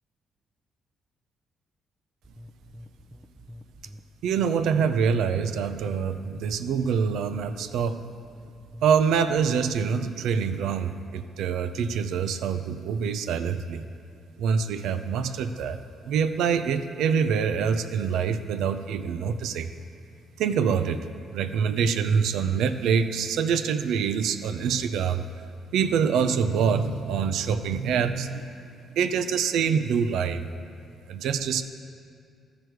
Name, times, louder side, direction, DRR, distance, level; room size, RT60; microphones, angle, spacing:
sound 1, 2.2-10.2, equal, ahead, 0.6 m, -47 dB
voice 1, 4.2-8.0 8.8-13.9 14.4-15.8 16.0-19.7 20.4-25.2 25.7-30.5 31.1-31.6, right 6 dB, 85° right, 10 dB, 0.4 m, -25 dB
14.0 x 4.8 x 4.7 m, 2.3 s
cardioid pair, 90°, 0 cm